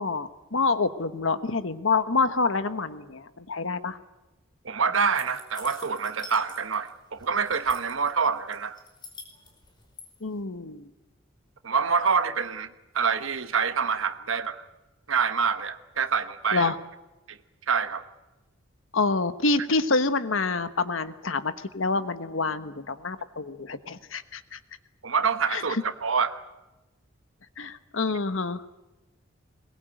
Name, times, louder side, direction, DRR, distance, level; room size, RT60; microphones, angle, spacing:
voice 1, 0.0-4.0 10.2-10.9 16.5-16.8 18.9-24.6 25.5-25.8 27.6-28.6, left 3 dB, 80° left, 1.2 m, -27 dB
voice 2, 4.6-8.8 11.6-14.7 15.1-16.7 17.3-17.4 17.7-18.0 25.0-26.4, right 5 dB, 80° right, 1.1 m, -26 dB
sound 1, 5.1-6.9 7.2-8.1 8.5-10.1, left 4 dB, 25° left, 4.8 m, -46 dB
22.0 x 20.5 x 9.1 m
head